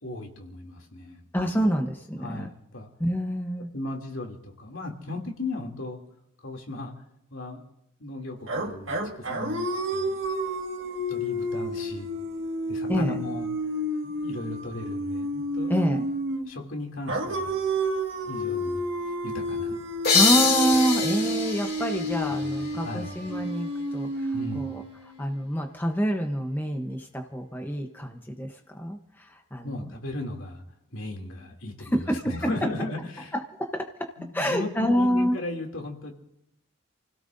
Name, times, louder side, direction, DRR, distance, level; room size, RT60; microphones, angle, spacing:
voice 1, 0.0-1.3 2.2-2.9 3.7-6.0 6.4-6.9 7.3-7.6 8.0-10.1 11.1-12.1 12.7-13.5 14.0-15.7 16.4-17.5 18.2-19.8 22.4-23.2 24.3-24.8 29.6-30.6 30.9-33.3 34.2-36.1, left 2 dB, 70° left, 1 dB, 2.8 m, -36 dB
voice 2, 1.3-2.5 3.0-3.7 12.9-13.2 15.7-16.0 20.1-29.8 31.8-32.5 33.3-35.4, equal, 10° left, 3 dB, 0.9 m, -27 dB
sound 1, 8.5-16.5 17.1-25.2, right 1 dB, 65° right, 1.9 m, -30 dB
sound 2, 20.0-23.5, left 4 dB, 50° left, 2.8 m, -26 dB
29.0 x 17.0 x 2.7 m, 0.83 s
head